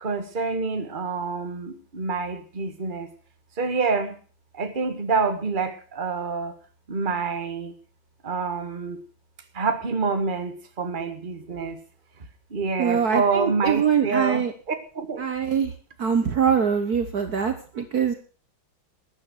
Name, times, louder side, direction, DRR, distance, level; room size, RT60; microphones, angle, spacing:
voice 1, 0.0-3.1 3.6-4.2 4.5-6.5 6.9-7.7 8.2-9.0 9.5-11.8 12.5-15.2, right 4 dB, 25° right, 1.6 m, -27 dB
voice 2, 12.8-14.5 15.2-15.7 16.0-18.1, right 7 dB, 55° right, 1.5 m, -23 dB
13.5 x 10.0 x 6.1 m
omnidirectional pair, 2.2 m